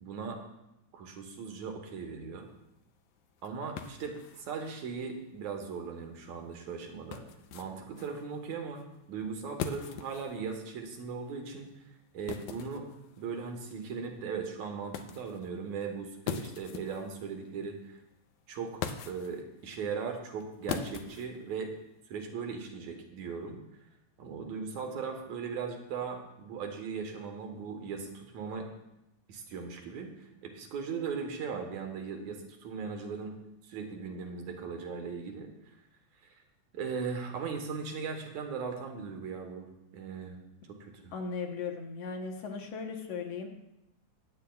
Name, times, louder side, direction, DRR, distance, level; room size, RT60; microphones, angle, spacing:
voice 1, 0.0-0.4 0.9-2.5 3.4-7.2 7.5-8.8 9.1-11.7 12.1-12.9 13.2-18.0 18.5-21.7 22.1-23.6 24.2-28.7 29.3-33.4 33.6-35.5 36.7-40.4 40.7-41.1, right 5 dB, 75° right, 3 dB, 2.6 m, -38 dB
sound 1, 2.4-22.0, left 8 dB, 85° left, 2.1 m, -44 dB
voice 2, 41.1-43.5, left 5 dB, 60° left, 3 dB, 2.1 m, -37 dB
21.0 x 9.1 x 2.4 m, 0.89 s
omnidirectional pair, 3.4 m